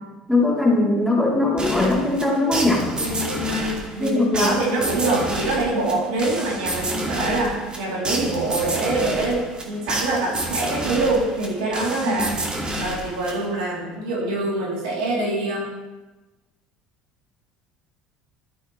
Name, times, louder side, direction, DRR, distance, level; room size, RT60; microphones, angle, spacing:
voice 1, 0.3-2.9 4.0-4.5 6.9-7.1 12.0-12.3, left 2 dB, ahead, -4 dB, 3.4 m, -20 dB
sound 1, 1.6-13.7, right 1 dB, 25° right, 2.2 m, -29 dB
voice 2, 3.0-12.3 12.8-15.6, right 2 dB, 85° right, -4 dB, 3.3 m, -25 dB
12.5 x 8.5 x 3.3 m, 1.1 s
supercardioid pair, 85°, 4 cm